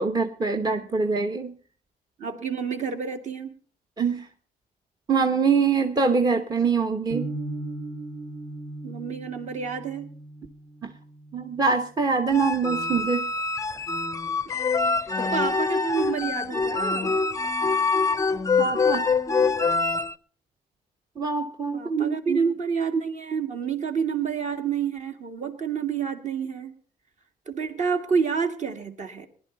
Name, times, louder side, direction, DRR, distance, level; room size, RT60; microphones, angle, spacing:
voice 1, 0.0-1.5 4.0-4.2 5.1-7.3 10.8-10.9 11.3-13.3 18.6-19.0 21.2-22.4, right 5 dB, 25° right, 5 dB, 0.9 m, -24 dB
voice 2, 2.2-3.5 8.8-10.1 14.5-14.7 15.0-17.2 21.7-26.7 27.5-29.3, right 6 dB, 45° right, 6 dB, 2.1 m, -29 dB
sound 1, 7.1-13.2, right 2 dB, 65° right, 1.9 m, -38 dB
sound 2, 12.3-20.1, left 4 dB, 20° left, 0.5 m, -25 dB
19.5 x 11.0 x 3.9 m, 0.43 s
cardioid pair, 110°, 17 cm